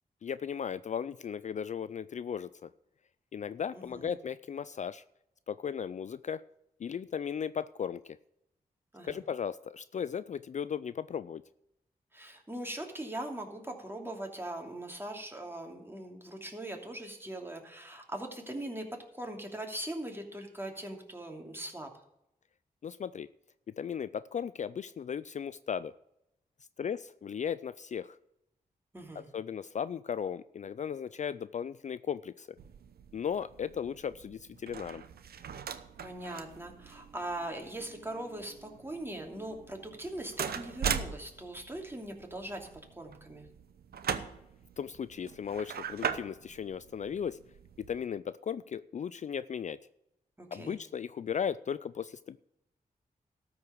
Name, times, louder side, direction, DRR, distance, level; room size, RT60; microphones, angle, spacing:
voice 1, 0.2-2.7 3.3-5.0 5.5-6.4 6.8-8.2 9.0-11.4 22.8-23.3 23.8-25.9 26.8-28.2 29.3-32.5 33.1-35.0 44.8-47.4 47.9-49.8 50.5-52.4, left 7 dB, 50° left, 16 dB, 0.4 m, -36 dB
voice 2, 3.7-4.2 8.9-9.2 12.1-21.9 28.9-29.3 36.0-42.7 43.0-43.5 50.4-50.8, right 1 dB, 15° right, 2 dB, 2.7 m, -41 dB
sound 1, 32.6-48.0, right 7 dB, 75° right, 0.8 m, -41 dB
13.0 x 4.9 x 8.5 m, 0.83 s
supercardioid pair, 45°, 16 cm